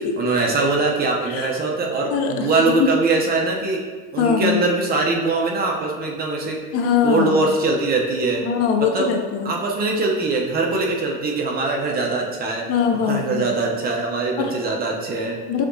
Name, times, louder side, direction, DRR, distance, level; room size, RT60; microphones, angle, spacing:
voice 1, 0.2-3.8 4.1-6.6 7.0-8.4 8.8-9.1 9.4-12.6 12.9-15.4, right 3 dB, 30° right, 0 dB, 0.7 m, -22 dB
voice 2, 2.1-2.9 4.2-4.6 6.7-7.4 8.4-9.5 12.7-13.5 14.4-14.5 15.5-15.7, left 7 dB, 55° left, 4 dB, 0.5 m, -21 dB
5.7 x 2.9 x 2.7 m, 1.5 s
cardioid pair, 125°, 29 cm